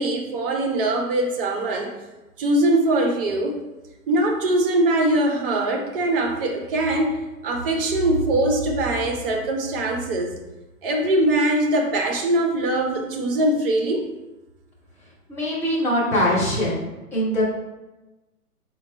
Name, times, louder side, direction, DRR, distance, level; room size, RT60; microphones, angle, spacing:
voice 1, 0.0-1.9 2.4-3.6 4.1-7.1 7.4-10.3 10.8-14.0, right 1 dB, 40° right, 2 dB, 0.7 m, -22 dB
voice 2, 15.3-16.8 17.1-17.4, left 1 dB, 5° left, -7 dB, 0.6 m, -22 dB
4.4 x 2.3 x 4.1 m, 1.1 s
hypercardioid pair, 125°, 45 cm